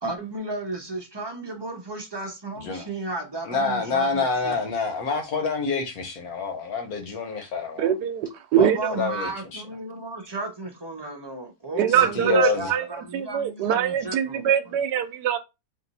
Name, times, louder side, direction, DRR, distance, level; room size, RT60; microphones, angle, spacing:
voice 1, 0.0-4.6 8.6-14.8, right 2 dB, 25° right, 0.6 m, -33 dB
voice 2, 3.5-7.9 9.0-9.6 12.1-12.7, left 4 dB, 65° left, 1.4 m, -27 dB
voice 3, 7.8-8.9 11.7-12.9 13.1-15.4, right 9 dB, 90° right, 1.2 m, -23 dB
3.8 x 2.6 x 4.0 m
omnidirectional pair, 1.7 m